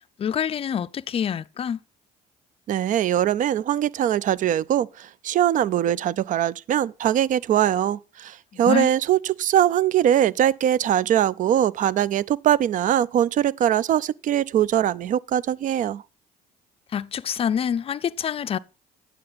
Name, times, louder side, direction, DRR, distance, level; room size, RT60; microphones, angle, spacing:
voice 1, 0.2-1.8 8.5-8.9 16.9-18.6, left 8 dB, 35° left, 0.4 m, -26 dB
voice 2, 2.7-16.0, right 11 dB, 50° right, 0.4 m, -22 dB
9.6 x 7.6 x 4.0 m
cardioid pair, 110°, 17 cm